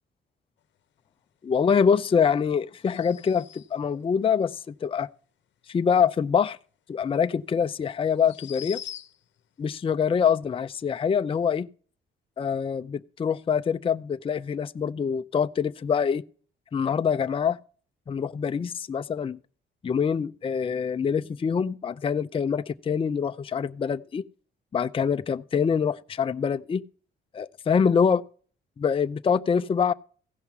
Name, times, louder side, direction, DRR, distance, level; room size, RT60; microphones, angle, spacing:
voice 1, 1.4-5.1 5.7-6.6 6.9-8.8 9.6-11.7 12.4-16.2 16.7-17.6 18.1-19.4 19.8-24.2 24.7-26.8 27.3-28.2 28.8-29.9, left 6 dB, 25° left, 0.5 m, -25 dB
sound 1, 2.8-3.9 7.0-7.1 8.1-9.4, left 10 dB, 65° left, 0.8 m, -42 dB
16.0 x 5.7 x 4.5 m
cardioid pair, 90°, 20 cm